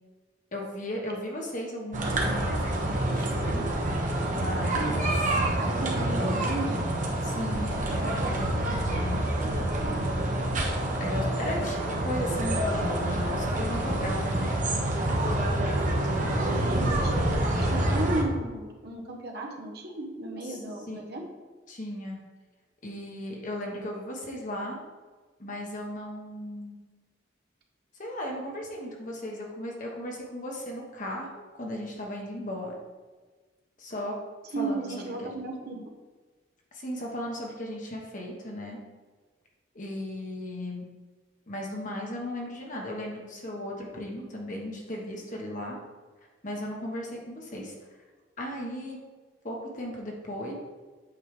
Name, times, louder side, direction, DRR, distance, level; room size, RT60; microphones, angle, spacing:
voice 1, 0.5-3.7 4.3-5.4 7.2-9.8 11.0-14.9 20.4-20.6 20.9-21.2 21.7-22.2 22.8-24.8 25.4-26.8 28.0-31.3 31.6-32.8 33.8-34.2 34.5-35.3 36.7-38.8 39.7-40.8 41.5-45.8 46.4-47.7 48.4-49.0 49.4-50.5, left 1 dB, 45° left, -1 dB, 1.4 m, -36 dB
sound 1, 1.9-18.2, right 1 dB, 45° right, 1.2 m, -27 dB
voice 2, 5.6-6.9 16.4-21.2 34.5-35.9, right 2 dB, 60° right, 0 dB, 1.2 m, -34 dB
8.6 x 5.6 x 3.4 m, 1.3 s
head